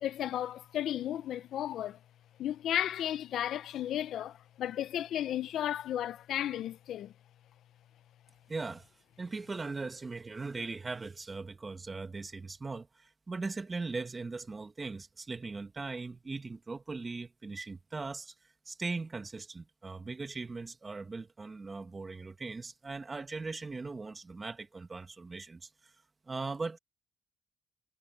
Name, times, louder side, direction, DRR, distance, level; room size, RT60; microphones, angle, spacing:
voice 1, 0.0-2.0 2.4-7.1, left 11 dB, 75° left, 0.7 m, -34 dB
voice 2, 8.5-8.9 9.2-18.3 18.7-25.9 26.3-26.8, right 3 dB, 30° right, 2.1 m, -39 dB
cardioid pair, 90°, 0 cm